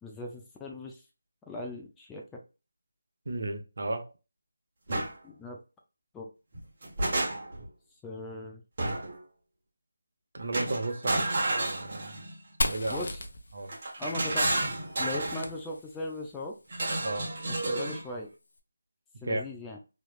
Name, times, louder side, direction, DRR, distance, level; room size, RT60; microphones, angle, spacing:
voice 1, 0.0-1.0 1.5-2.4 5.0-5.6 6.1-6.3 8.0-8.6 11.0-11.2 12.9-13.2 14.0-14.5 15.0-16.5 17.5-18.3 19.2-19.8, left 2 dB, 5° left, 0.4 m, -38 dB
voice 2, 3.3-4.1 10.3-12.2 12.6-13.1 13.5-13.7 17.0-17.3 19.2-19.4, right 2 dB, 60° right, 0.8 m, -33 dB
sound 1, 4.9-5.1 6.5-7.7 8.8-9.2 10.5-12.4 13.7-15.5 16.7-18.0, right 2 dB, 45° right, 1.1 m, -31 dB
Fire, 12.6-16.3, left 2 dB, 60° left, 0.7 m, -36 dB
3.1 x 3.0 x 2.3 m
figure-of-eight pair, 165°, 0 cm